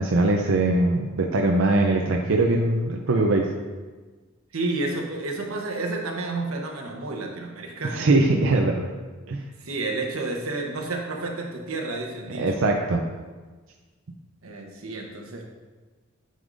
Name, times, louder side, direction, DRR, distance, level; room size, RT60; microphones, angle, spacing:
voice 1, 0.0-3.5 7.9-8.9 9.3-9.4 12.3-13.0, right 2 dB, 70° right, 1 dB, 0.5 m, -21 dB
voice 2, 4.5-8.1 9.6-12.6 14.4-15.5, right 2 dB, 90° right, 1 dB, 1.0 m, -30 dB
9.3 x 5.3 x 2.6 m, 1.3 s
head